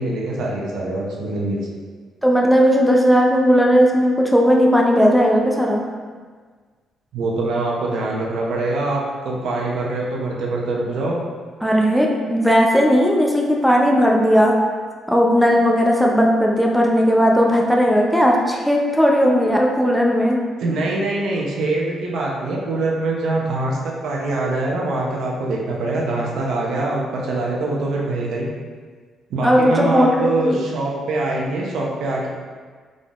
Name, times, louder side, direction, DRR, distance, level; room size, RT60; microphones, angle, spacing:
voice 1, 0.0-1.6 7.1-11.2 20.6-28.5 29.3-32.3, right 2 dB, 75° right, -2 dB, 0.7 m, -24 dB
voice 2, 2.2-5.8 11.6-14.5 15.1-20.4 29.4-30.6, equal, ahead, -1 dB, 0.5 m, -16 dB
3.7 x 3.7 x 2.4 m, 1.5 s
cardioid pair, 90°, 0 cm